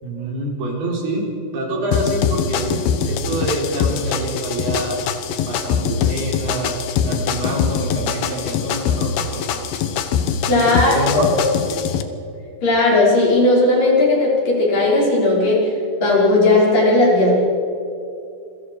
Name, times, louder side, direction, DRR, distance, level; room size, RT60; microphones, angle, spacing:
voice 1, 0.0-5.0 5.5-6.8 7.0-9.6 10.5-11.8, right 1 dB, 80° right, -1 dB, 6.1 m, -26 dB
sound 1, 1.9-12.0, left 7 dB, 75° left, 3.0 m, -23 dB
voice 2, 10.5-11.4 12.6-15.7 16.0-17.4, left 2 dB, 60° left, -4 dB, 7.3 m, -16 dB
28.0 x 23.0 x 4.9 m, 2.6 s
omnidirectional pair, 4.4 m